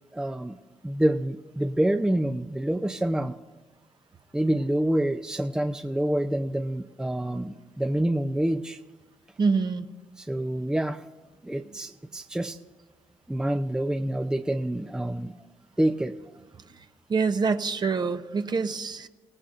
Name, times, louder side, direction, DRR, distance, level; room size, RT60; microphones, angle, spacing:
voice 1, 0.1-0.6 0.8-3.3 4.3-8.8 10.2-11.0 11.4-12.6 13.3-15.5 15.8-16.1, right 1 dB, 5° right, 6 dB, 0.6 m, -27 dB
voice 2, 9.4-9.9 17.1-19.1, right 4 dB, 40° right, 9 dB, 0.9 m, -25 dB
27.5 x 17.0 x 2.6 m, 1.2 s
cardioid pair, 75°, 11 cm